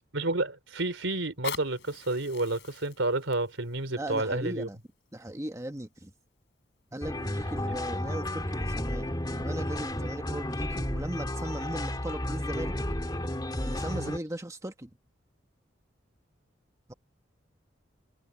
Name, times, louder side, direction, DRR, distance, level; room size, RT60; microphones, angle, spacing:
voice 1, 0.1-4.7 13.9-14.1, right 2 dB, 90° right, 3.5 m, -30 dB
Fire, 1.2-6.1 6.8-6.9, left 7 dB, 65° left, 5.5 m, -44 dB
voice 2, 3.9-4.8 5.1-6.1 6.9-12.7 13.6-14.9 16.9-17.0, right 1 dB, 15° right, 1.4 m, -38 dB
sound 1, 7.0-14.2, left 1 dB, 20° left, 2.4 m, -32 dB
head